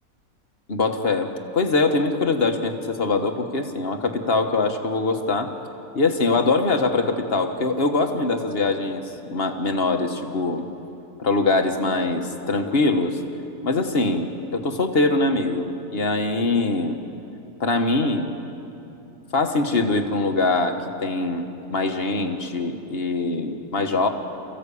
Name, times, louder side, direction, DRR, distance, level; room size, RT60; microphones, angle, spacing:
voice 1, 0.7-5.5 5.9-10.6 11.2-13.2 13.6-17.0 17.6-18.3 19.3-24.1, left 3 dB, 40° left, 5 dB, 1.6 m, -23 dB
29.0 x 15.5 x 8.5 m, 2.8 s
omnidirectional pair, 1.6 m